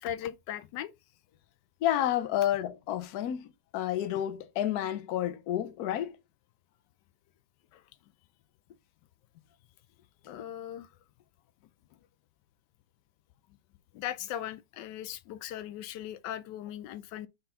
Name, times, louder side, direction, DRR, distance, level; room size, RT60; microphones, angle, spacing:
voice 1, 0.0-0.9 7.7-7.8 10.3-10.9 13.9-17.3, left 11 dB, 90° left, 1.2 m, -38 dB
voice 2, 1.8-6.2, left 11 dB, 70° left, 1.2 m, -30 dB
4.4 x 3.9 x 5.5 m
omnidirectional pair, 1.9 m